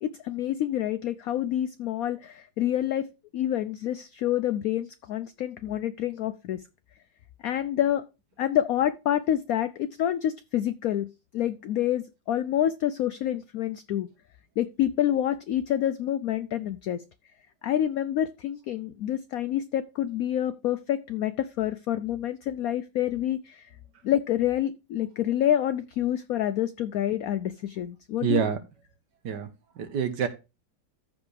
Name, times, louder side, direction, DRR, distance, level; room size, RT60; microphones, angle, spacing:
voice 1, 0.0-6.6 7.4-8.0 8.4-11.1 11.3-14.1 14.6-17.0 17.6-23.7 24.0-28.4, left 11 dB, 70° left, 0.9 m, -27 dB
voice 2, 28.2-28.6 29.2-29.5 29.8-30.3, right 8 dB, 70° right, 1.8 m, -26 dB
14.0 x 5.3 x 3.3 m
omnidirectional pair, 2.0 m